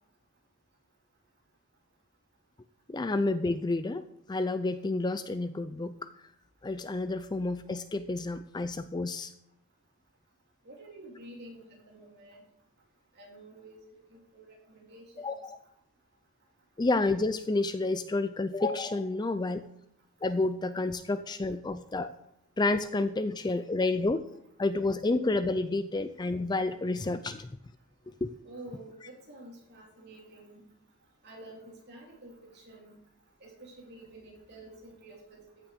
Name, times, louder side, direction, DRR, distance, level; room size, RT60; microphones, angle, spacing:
voice 1, 2.9-4.0 4.3-6.1 6.6-9.3 15.2-15.6 16.8-19.7 20.2-22.1 22.6-24.2 24.6-27.5 28.1-28.3, left 2 dB, 20° left, 11 dB, 0.4 m, -30 dB
voice 2, 10.6-12.4 13.1-13.8 14.1-15.3 28.4-30.6 31.2-33.0 33.4-35.5, right 1 dB, 50° right, -2 dB, 3.4 m, -49 dB
14.5 x 6.1 x 5.1 m, 0.76 s
head